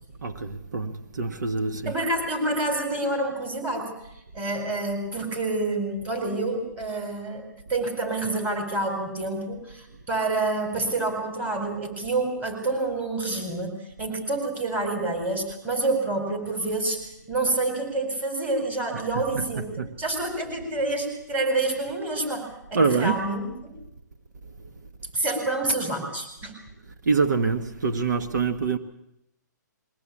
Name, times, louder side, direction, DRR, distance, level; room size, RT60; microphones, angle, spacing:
voice 1, 0.2-1.9 19.1-19.2 19.8-19.9 22.7-23.2 27.0-28.8, right 4 dB, 70° right, 1.4 m, -25 dB
voice 2, 1.8-3.9 4.3-19.7 20.0-23.7 25.1-26.6, right 2 dB, 15° right, 4.6 m, -28 dB
22.0 x 17.0 x 8.6 m
hypercardioid pair, 150°, 10 cm